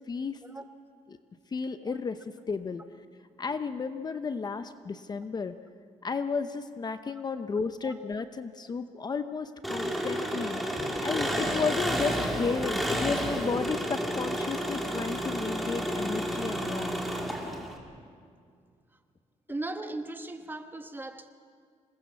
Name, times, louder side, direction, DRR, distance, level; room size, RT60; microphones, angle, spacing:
voice 1, 0.1-0.4 1.1-1.2 1.5-2.2 2.5-2.8 3.4-5.5 6.0-10.6 11.0-17.0, left 5 dB, 30° left, 10 dB, 0.8 m, -33 dB
Engine, 9.6-17.8, equal, ahead, 3.0 m, -31 dB
voice 2, 19.5-21.3, right 2 dB, 15° right, 6 dB, 1.4 m, -38 dB
26.0 x 20.0 x 7.2 m, 2.2 s
cardioid pair, 115°, 13 cm